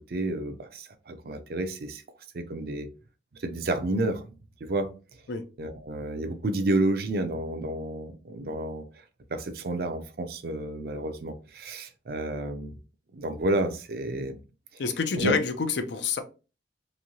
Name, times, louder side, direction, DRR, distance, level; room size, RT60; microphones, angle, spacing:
voice 1, 0.1-2.0 2.3-2.9 3.4-4.3 4.6-4.9 5.6-8.8 9.3-12.7 13.1-14.4 15.2-15.4, right 1 dB, 60° right, 0.5 m, -30 dB
voice 2, 14.8-16.2, left 5 dB, 80° left, 0.5 m, -27 dB
3.0 x 2.7 x 2.6 m
head